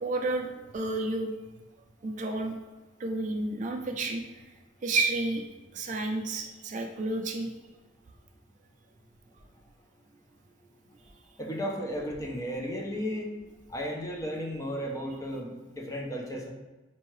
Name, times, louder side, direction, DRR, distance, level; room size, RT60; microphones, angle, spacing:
voice 1, 0.0-1.3 2.0-2.5 3.0-4.2 4.8-5.4 5.7-7.5, right 2 dB, 40° right, 3 dB, 0.4 m, -30 dB
voice 2, 11.4-13.3 13.7-16.5, equal, 15° left, 0 dB, 0.5 m, -34 dB
4.5 x 2.7 x 3.1 m, 1.2 s
head